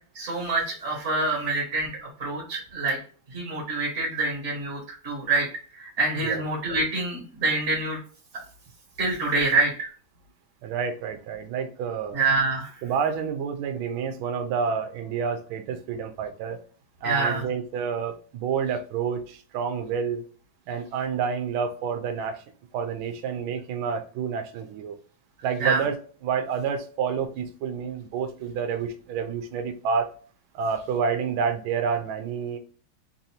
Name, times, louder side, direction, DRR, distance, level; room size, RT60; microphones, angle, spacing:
voice 1, 0.2-3.0 3.3-5.5 5.7-8.0 9.0-9.9 12.1-12.7 17.0-17.4 25.6-25.8, right 3 dB, 40° right, -3 dB, 1.3 m, -26 dB
voice 2, 10.6-12.2 12.8-16.6 17.0-20.2 20.7-22.4 22.7-25.0 25.4-26.0 26.2-30.1 30.5-32.6, right 6 dB, 75° right, 6 dB, 1.4 m, -29 dB
3.8 x 2.6 x 2.7 m, 0.41 s
omnidirectional pair, 2.4 m